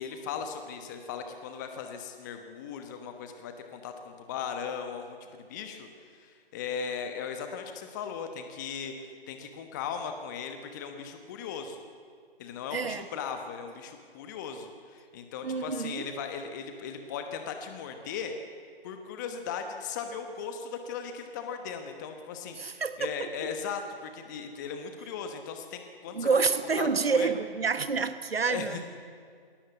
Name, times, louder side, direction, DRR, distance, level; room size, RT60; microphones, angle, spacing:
voice 1, 0.0-11.8 12.4-18.3 18.8-26.4 26.8-27.3 28.4-28.8, left 6 dB, 20° left, 6 dB, 1.1 m, -38 dB
voice 2, 12.7-13.1 15.4-16.1 22.6-23.3 26.1-28.8, right 5 dB, 75° right, 11 dB, 1.3 m, -28 dB
20.5 x 17.5 x 8.3 m, 2.1 s
figure-of-eight pair, 150°, 30 cm